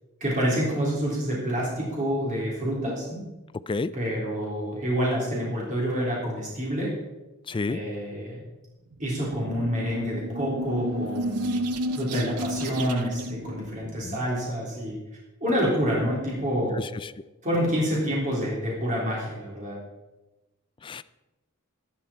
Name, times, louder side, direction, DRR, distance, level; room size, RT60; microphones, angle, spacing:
voice 1, 0.2-3.3 3.9-6.9 7.7-8.4 9.0-11.6 11.9-15.0 15.4-16.8 17.4-19.8, equal, 35° right, -5 dB, 3.6 m, -27 dB
voice 2, 7.5-7.8 14.0-14.2 16.7-17.1 20.8-21.0, left 3 dB, 20° left, 14 dB, 0.3 m, -30 dB
sound 1, 8.9-14.3, right 1 dB, 90° right, 0.8 m, -32 dB
12.0 x 11.0 x 4.4 m, 1.1 s
head